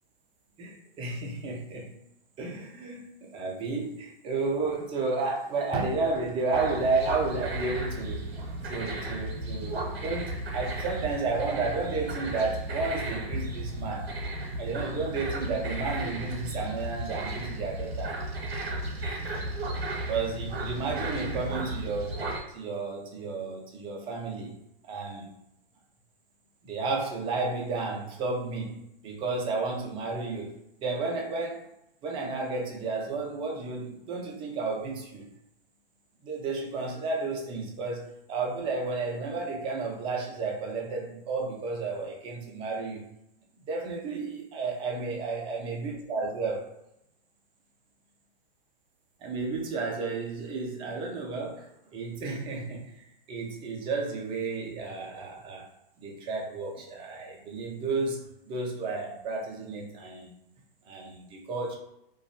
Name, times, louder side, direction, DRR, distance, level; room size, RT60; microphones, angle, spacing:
voice 1, 0.6-1.9 2.4-14.1 14.6-18.2 20.1-24.6 24.8-25.3 26.6-31.6 32.0-35.3 36.2-43.1 43.6-46.7 49.2-55.7 56.0-60.3 60.8-61.8, right 3 dB, 15° right, 0 dB, 0.4 m, -32 dB
sound 1, 6.5-22.4, right 1 dB, 85° right, 0.7 m, -34 dB
2.4 x 2.2 x 2.6 m, 0.81 s
hypercardioid pair, 120°, 30 cm